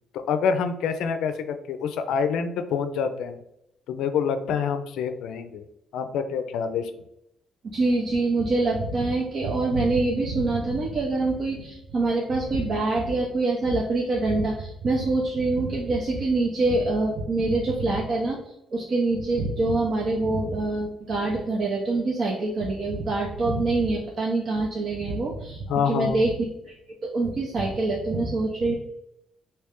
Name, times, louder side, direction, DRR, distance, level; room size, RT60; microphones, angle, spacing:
voice 1, 0.3-3.4 3.9-5.7 5.9-6.9 25.7-26.3, left 6 dB, 85° left, 9 dB, 0.4 m, -26 dB
voice 2, 7.6-18.4 18.7-26.7 27.0-28.7, right 2 dB, 55° right, -2 dB, 0.7 m, -25 dB
3.1 x 2.8 x 3.5 m, 0.79 s
cardioid pair, 90°, 0 cm